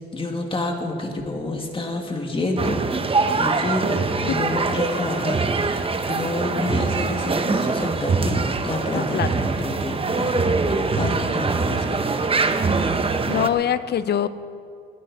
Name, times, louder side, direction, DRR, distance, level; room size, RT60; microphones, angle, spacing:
voice 1, 0.1-2.8 3.3-10.4 10.8-12.4 12.7-12.8, left 2 dB, 25° left, 2 dB, 2.4 m, -29 dB
sound 1, 2.6-13.5, right 4 dB, 30° right, 0.9 m, -23 dB
voice 2, 8.9-9.3 11.0-11.1 13.3-14.3, left 9 dB, 55° left, 14 dB, 0.7 m, -23 dB
22.0 x 11.0 x 4.3 m, 2.3 s
cardioid pair, 90°, 20 cm